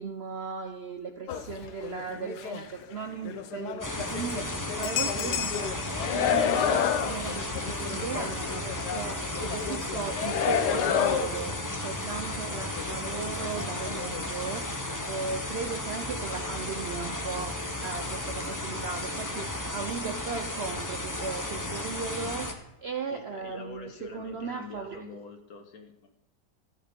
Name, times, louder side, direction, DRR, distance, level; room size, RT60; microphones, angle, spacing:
voice 1, 0.0-14.8 15.1-25.1, right 5 dB, 60° right, 6 dB, 0.7 m, -37 dB
sound 1, 1.3-2.9 3.2-11.8 12.1-12.2 12.5-14.2, left 8 dB, 80° left, 1.3 m, -31 dB
sound 2, 3.8-22.5, left 1 dB, 15° left, 0.8 m, -34 dB
voice 2, 23.1-26.1, left 3 dB, 65° left, 5 dB, 1.7 m, -45 dB
13.5 x 6.5 x 5.2 m, 0.94 s
omnidirectional pair, 1.8 m